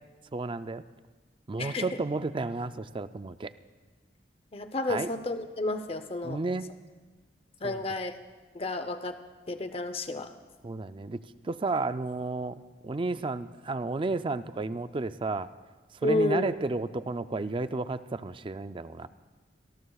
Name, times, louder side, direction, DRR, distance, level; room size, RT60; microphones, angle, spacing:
voice 1, 0.3-0.8 1.5-3.5 4.9-5.1 6.2-6.7 7.6-7.8 10.6-15.5 16.0-19.1, right 3 dB, 30° right, 12 dB, 0.4 m, -32 dB
voice 2, 1.6-2.0 4.5-6.4 7.6-8.1 8.5-9.2 9.5-10.3 16.0-16.5, left 2 dB, 35° left, 9 dB, 0.8 m, -31 dB
25.5 x 19.0 x 2.4 m, 1.4 s
head